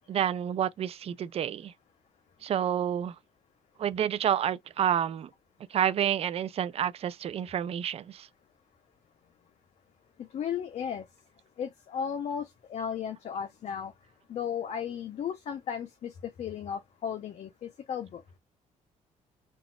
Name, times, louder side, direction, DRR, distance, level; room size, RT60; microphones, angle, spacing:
voice 1, 0.1-1.7 2.4-3.1 3.8-5.3 5.7-8.3, right 9 dB, 45° right, 0.4 m, -29 dB
voice 2, 10.3-11.0 11.6-13.9 14.3-16.1 16.4-18.2, left 8 dB, 55° left, 0.6 m, -35 dB
3.9 x 2.4 x 2.2 m
cardioid pair, 120°, 14 cm